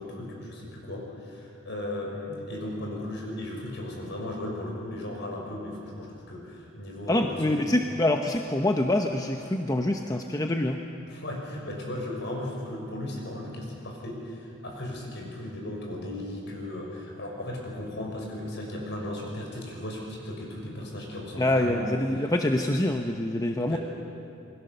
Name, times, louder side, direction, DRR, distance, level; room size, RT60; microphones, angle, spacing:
voice 1, 0.0-7.6 11.1-21.9 23.7-23.8, left 1 dB, 55° left, 0 dB, 6.0 m, -36 dB
voice 2, 7.1-10.8 21.4-23.8, left 1 dB, 15° left, 3 dB, 0.9 m, -25 dB
27.5 x 21.5 x 6.8 m, 2.5 s
head